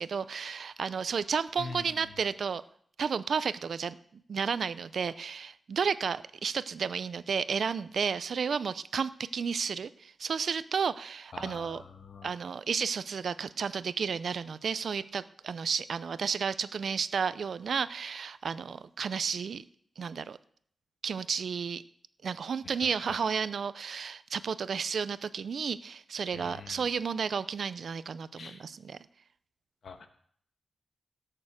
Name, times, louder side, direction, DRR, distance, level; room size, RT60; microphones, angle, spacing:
voice 1, 0.0-2.6 3.0-11.8 12.2-19.6 20.0-20.4 21.0-21.8 22.2-29.0, right 6 dB, 60° right, 16 dB, 0.5 m, -32 dB
voice 2, 1.6-2.0 11.3-12.3 22.6-23.2 26.3-26.9 28.4-28.6 29.8-30.1, left 5 dB, 65° left, 7 dB, 1.4 m, -45 dB
17.0 x 6.7 x 7.3 m, 0.63 s
wide cardioid pair, 140°, 0 cm